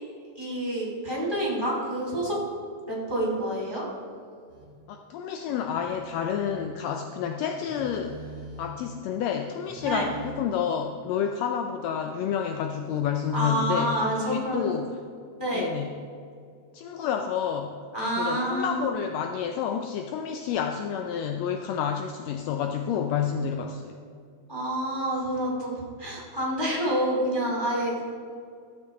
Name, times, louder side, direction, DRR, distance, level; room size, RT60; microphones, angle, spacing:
voice 1, 0.4-2.4 2.9-3.8 9.8-10.1 13.3-14.7 15.4-15.6 17.9-18.8 24.5-25.7 26.0-28.0, right 1 dB, 10° left, -5 dB, 2.0 m, -28 dB
Telephone, 4.5-4.8 5.7-6.8 7.7-8.9 9.7-10.4, equal, 20° right, 1.4 m, -43 dB
voice 2, 4.9-8.2 8.6-14.9 15.5-15.9 16.7-17.8 18.2-24.0, left 8 dB, 85° left, 4 dB, 1.5 m, -29 dB
13.0 x 7.7 x 3.6 m, 2.3 s
omnidirectional pair, 3.5 m